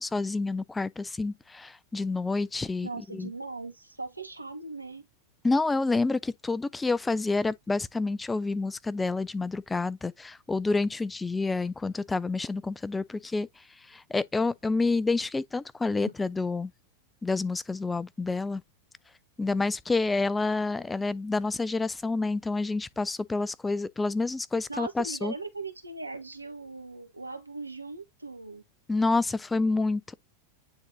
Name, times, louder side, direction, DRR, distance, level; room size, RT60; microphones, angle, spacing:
voice 1, 0.0-2.9 3.2-3.3 5.4-13.5 13.9-16.7 17.2-18.6 19.4-25.3 28.9-30.1, left 3 dB, 10° left, 0.4 m, -28 dB
voice 2, 2.8-5.1 24.7-28.6, right 3 dB, 85° right, 1.1 m, -39 dB
9.5 x 3.9 x 2.7 m
figure-of-eight pair, 90°, 0 cm